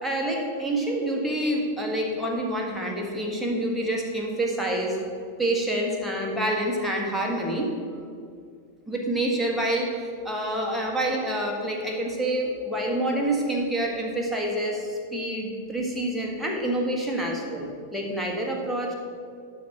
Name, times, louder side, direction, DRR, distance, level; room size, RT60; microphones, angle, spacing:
voice 1, 0.0-5.0 5.4-8.0 8.9-9.9 10.2-18.9, right 1 dB, ahead, -2 dB, 1.5 m, -27 dB
11.0 x 4.2 x 5.8 m, 2.2 s
figure-of-eight pair, 90°, 0 cm